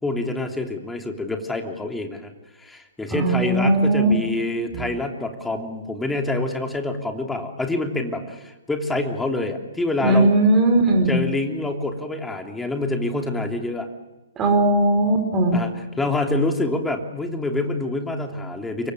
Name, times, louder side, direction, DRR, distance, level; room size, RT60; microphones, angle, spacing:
voice 1, 0.0-2.3 2.6-10.3 11.1-13.9 15.5-18.9, left 2 dB, 5° left, 4 dB, 3.1 m, -26 dB
voice 2, 3.1-4.1 4.7-4.8 10.0-11.2 14.4-15.6, right 2 dB, 20° right, 4 dB, 4.8 m, -18 dB
28.5 x 24.0 x 6.6 m, 1.1 s
figure-of-eight pair, 125°, 0 cm